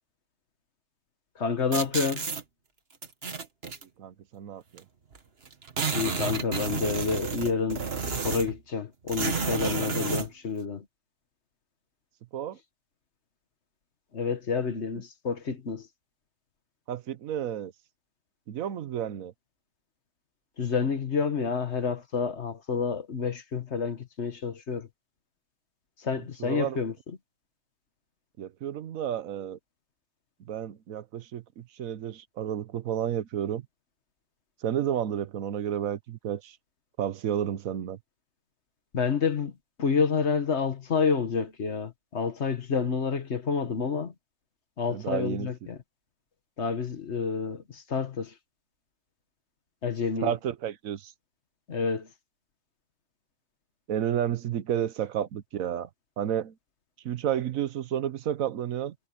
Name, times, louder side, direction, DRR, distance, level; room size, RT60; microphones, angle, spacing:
voice 1, 1.4-2.3 5.9-10.9 14.1-15.9 20.6-24.9 26.0-27.2 38.9-39.5 39.8-44.1 44.8-45.8 46.6-48.3 49.8-50.3 51.7-52.1, left 5 dB, 55° left, 1.7 m, -29 dB
sound 1, 1.7-2.4 3.0-3.8 4.8-4.9 5.1-5.2 5.5-8.6 9.1-10.3, right 5 dB, 45° right, 1.7 m, -31 dB
voice 2, 4.0-4.8 12.3-12.6 16.9-17.7 18.5-19.3 26.4-26.8 28.4-29.6 30.5-33.7 34.6-36.6 37.0-38.0 44.9-45.7 50.2-51.1 53.9-55.9 56.2-56.5 57.0-58.9, right 10 dB, 80° right, 1.3 m, -31 dB
omnidirectional pair, 1.4 m